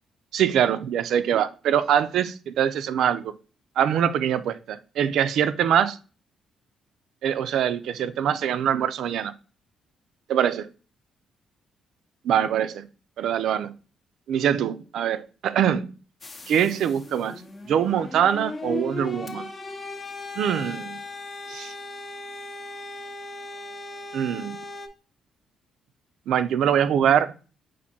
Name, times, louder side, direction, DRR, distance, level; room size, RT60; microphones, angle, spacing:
voice 1, 0.3-3.3 3.8-6.0 7.2-9.3 10.3-10.7 12.2-12.9 13.2-13.7 14.3-15.9 16.5-17.4 17.7-19.5 20.4-21.0 21.5-21.7 24.1-24.6 26.3-27.3, right 9 dB, 75° right, 0.3 m, -23 dB
sound 1, 16.2-24.9, left 2 dB, 30° left, 0.6 m, -37 dB
4.5 x 2.6 x 4.0 m
cardioid pair, 90°, 0 cm